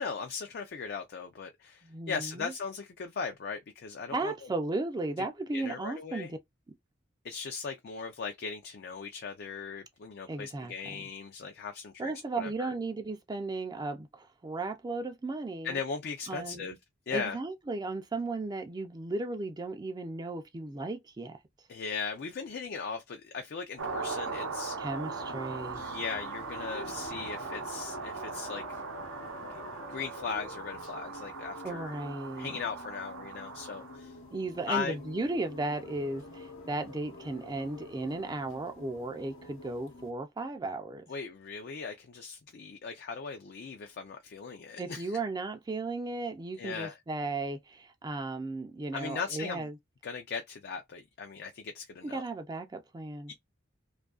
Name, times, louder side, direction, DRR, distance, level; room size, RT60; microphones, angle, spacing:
voice 1, 0.0-4.3 5.2-5.3 5.5-6.3 7.2-12.7 15.6-16.7 17.1-17.4 21.7-24.8 25.7-28.8 29.5-29.6 29.9-32.0 32.4-34.2 34.7-35.0 41.1-45.2 46.6-47.0 48.9-49.7 50.0-52.2 53.3-53.4, left 5 dB, 55° left, 0.4 m, -38 dB
voice 2, 1.8-2.5 4.1-6.4 10.3-10.7 12.0-15.8 16.3-16.8 17.1-21.4 24.8-25.8 31.6-32.6 34.3-41.0 44.8-49.8 52.0-53.3, right 2 dB, 20° right, 0.4 m, -35 dB
sound 1, 23.8-40.1, left 2 dB, 85° left, 0.9 m, -47 dB
sound 2, 23.8-34.0, right 5 dB, 85° right, 0.6 m, -40 dB
2.6 x 2.4 x 2.3 m
head